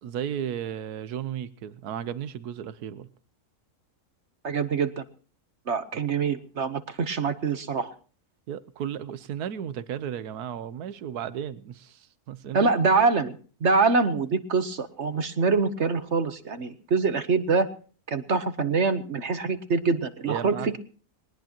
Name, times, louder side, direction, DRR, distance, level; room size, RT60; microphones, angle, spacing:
voice 1, 0.0-3.1 8.5-12.7 20.3-20.7, right 9 dB, 80° right, 15 dB, 1.4 m, -34 dB
voice 2, 4.4-5.0 5.7-7.9 12.5-17.7 18.1-20.8, right 4 dB, 50° right, 11 dB, 1.2 m, -25 dB
21.0 x 19.5 x 2.9 m, 0.41 s
omnidirectional pair, 1.6 m